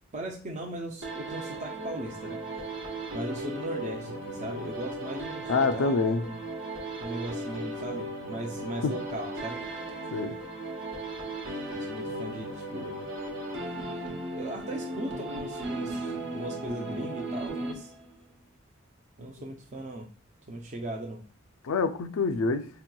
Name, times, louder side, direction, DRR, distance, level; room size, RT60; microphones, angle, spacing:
voice 1, 0.1-2.4 3.1-6.0 6.3-6.4 7.0-9.6 11.7-13.0 14.4-17.9 19.2-20.1 20.5-21.2, right 1 dB, 35° right, 0.4 m, -38 dB
sound 1, 1.0-18.2, right 1 dB, 60° right, 1.0 m, -36 dB
voice 2, 5.5-6.2 8.8-8.9 10.1-10.4 21.6-22.7, left 4 dB, 85° left, 0.4 m, -26 dB
4.5 x 2.8 x 2.2 m
head